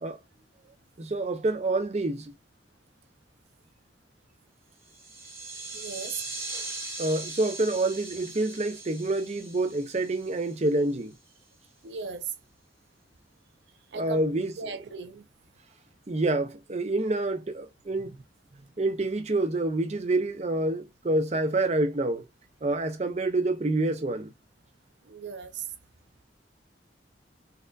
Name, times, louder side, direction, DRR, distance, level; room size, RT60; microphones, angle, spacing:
voice 1, 1.0-2.3 7.0-11.1 13.9-14.8 16.1-18.2 18.8-22.2 22.6-24.3, right 2 dB, 40° right, 0.6 m, -27 dB
sound 1, 4.8-10.9, right 2 dB, 15° right, 1.0 m, -40 dB
voice 2, 5.7-6.2 11.8-12.3 13.9-14.2 14.6-15.3 18.5-18.6 25.1-25.7, right 6 dB, 80° right, 0.6 m, -37 dB
4.1 x 2.6 x 2.4 m
head